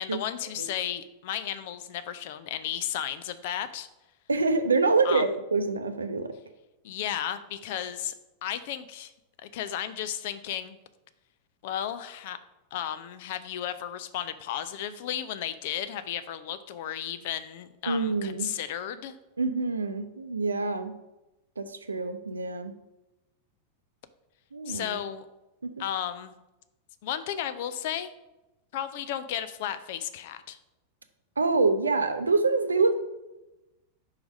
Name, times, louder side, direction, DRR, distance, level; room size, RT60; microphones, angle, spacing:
voice 1, 0.0-3.9 5.0-5.2 6.8-8.1 8.4-9.1 9.4-10.8 11.6-12.4 12.7-19.2 24.7-25.3 25.8-26.3 27.0-28.1 28.7-30.6, left 10 dB, 50° left, 13 dB, 0.5 m, -34 dB
voice 2, 4.3-6.3 17.9-18.5 19.4-20.9 21.6-22.7 24.5-25.0 25.6-25.7 31.4-32.9, right 3 dB, 75° right, 8 dB, 0.6 m, -26 dB
4.8 x 4.6 x 5.2 m, 0.98 s
figure-of-eight pair, 90°, 0 cm